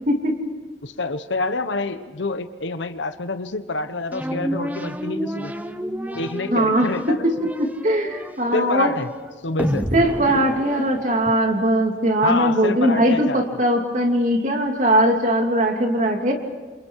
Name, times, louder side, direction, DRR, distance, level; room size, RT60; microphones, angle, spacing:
voice 1, 0.8-5.5 6.1-7.3 8.5-9.1 9.4-9.9 12.2-13.4, left 3 dB, 85° left, 10 dB, 1.2 m, -27 dB
sound 1, 4.1-11.6, equal, 10° right, 0.9 m, -30 dB
voice 2, 6.5-6.9 7.2-7.3 7.6-8.9 9.9-16.3, right 1 dB, 40° right, 3 dB, 2.9 m, -20 dB
28.5 x 27.5 x 4.8 m, 1.5 s
head